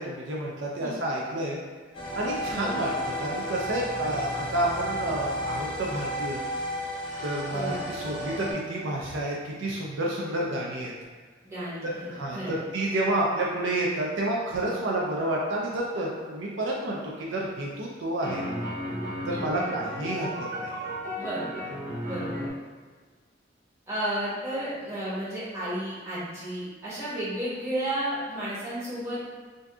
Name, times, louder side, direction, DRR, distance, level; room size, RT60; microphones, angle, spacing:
voice 1, 0.0-1.6 2.1-2.9 3.2-6.4 7.2-10.9 11.8-18.4 19.3-20.9, right 1 dB, 75° right, -3 dB, 0.5 m, -30 dB
sound 1, 1.9-8.5, equal, 30° left, 0.9 m, -33 dB
voice 2, 7.5-7.8 11.4-12.6 19.3-19.7 21.1-21.7 22.0-22.5 23.9-29.2, right 1 dB, 15° right, -11 dB, 1.2 m, -33 dB
sound 2, 17.4-17.5 18.2-22.5, equal, 45° right, 0.8 m, -34 dB
2.6 x 2.4 x 3.5 m, 1.5 s
head